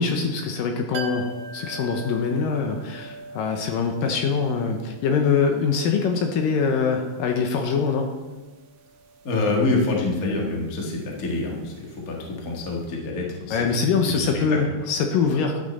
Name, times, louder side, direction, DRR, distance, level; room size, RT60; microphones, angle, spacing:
voice 1, 0.0-8.1 13.5-15.6, left 5 dB, 75° left, 4 dB, 2.3 m, -23 dB
sound 1, 0.9-12.6 12.8-12.9, right 3 dB, 75° right, 2.1 m, -43 dB
voice 2, 9.2-13.8 14.1-14.3, left 2 dB, 45° left, -1 dB, 1.1 m, -26 dB
11.5 x 7.4 x 4.2 m, 1.2 s
omnidirectional pair, 4.4 m